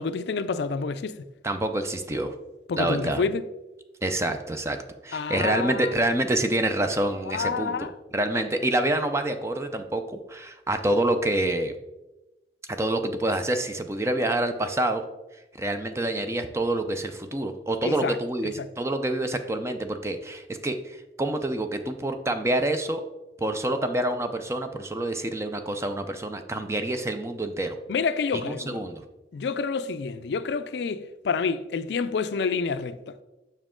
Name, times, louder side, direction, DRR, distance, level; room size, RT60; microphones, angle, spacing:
voice 1, 0.0-1.3 2.7-3.4 5.1-5.9 7.3-7.9 17.8-18.2 18.6-18.7 27.9-28.8 29.3-33.1, left 5 dB, 65° left, 0.4 m, -28 dB
voice 2, 1.4-2.3 2.8-3.2 4.0-4.8 5.0-7.7 8.1-11.7 12.7-15.0 15.6-23.0 23.4-27.8 28.4-29.0, right 1 dB, 15° right, 0.5 m, -27 dB
7.2 x 5.5 x 3.7 m
head